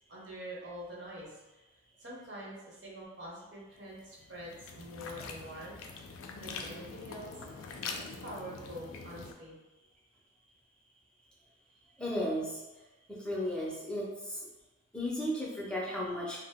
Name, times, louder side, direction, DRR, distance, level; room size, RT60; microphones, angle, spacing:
voice 1, 0.1-1.4 2.0-7.3 7.9-9.6, equal, 60° right, -5 dB, 0.9 m, -45 dB
sound 1, 3.9-9.3, left 4 dB, 80° left, 0.3 m, -44 dB
voice 2, 12.0-12.6 13.1-14.4 14.9-16.4, equal, 5° left, -5 dB, 0.5 m, -34 dB
2.6 x 2.0 x 3.5 m, 1.1 s
head